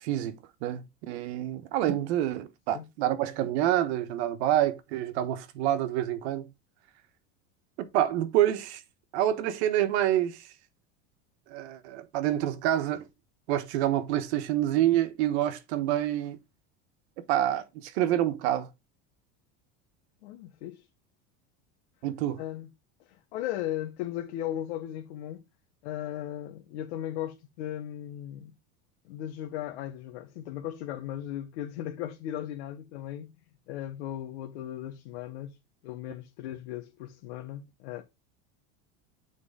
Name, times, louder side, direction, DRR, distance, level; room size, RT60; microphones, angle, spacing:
voice 1, 0.0-6.5 7.8-8.8 9.1-10.5 11.5-13.1 13.5-16.4 17.3-18.7 22.0-22.4, right 12 dB, 80° right, 1.3 m, -27 dB
voice 2, 20.2-20.8 22.4-22.7 23.0-25.4 25.8-28.5 29.0-33.3 33.7-35.6 35.8-38.0, left 12 dB, 85° left, 1.2 m, -37 dB
6.8 x 4.6 x 3.7 m
cardioid pair, 150°, 33 cm